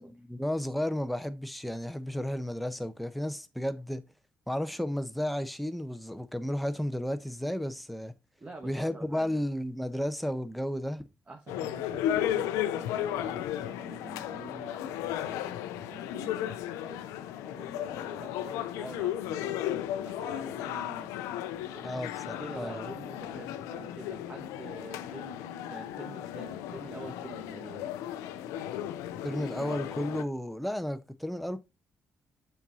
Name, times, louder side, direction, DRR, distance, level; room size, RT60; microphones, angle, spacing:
voice 1, 0.0-4.0 4.5-8.1 8.6-11.0 21.8-22.9 29.2-31.6, equal, ahead, 0.8 m, -33 dB
voice 2, 8.4-9.4 11.3-17.0 17.6-21.1 21.7-27.9 29.1-29.4, right 2 dB, 25° right, 1.3 m, -47 dB
sound 1, 11.5-30.2, left 11 dB, 85° left, 0.5 m, -35 dB
7.0 x 5.7 x 2.7 m
supercardioid pair, 55°, 5 cm